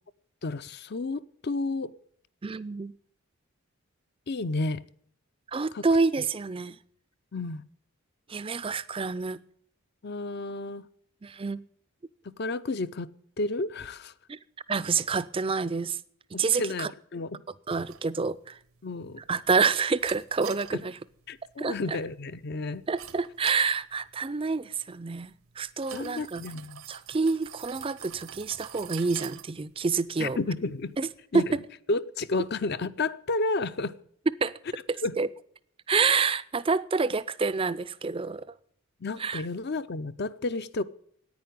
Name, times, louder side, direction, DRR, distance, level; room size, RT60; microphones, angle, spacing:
voice 1, 0.4-1.9 4.3-4.8 5.7-5.8 7.3-7.6 10.0-10.8 12.2-13.1 13.4-14.1 16.3-17.3 18.8-19.2 20.7-20.8 21.3-22.8 25.9-26.8 30.2-31.0 31.3-31.4 31.9-33.9 35.0-35.2 39.0-40.8, left 3 dB, 50° left, 0.5 m, -31 dB
voice 2, 2.4-2.9 5.5-6.8 8.3-9.4 11.2-11.6 14.3-14.4 14.7-16.0 16.4-16.9 17.7-18.6 19.3-21.0 21.6-22.0 22.9-26.4 26.9-30.4 31.0-31.1 31.3-31.6 34.4-34.5 34.9-35.3 35.9-38.4 39.2-39.4, right 4 dB, 25° right, 0.4 m, -28 dB
sound 1, 17.9-31.2, right 10 dB, 75° right, 0.9 m, -48 dB
10.5 x 9.2 x 9.2 m
head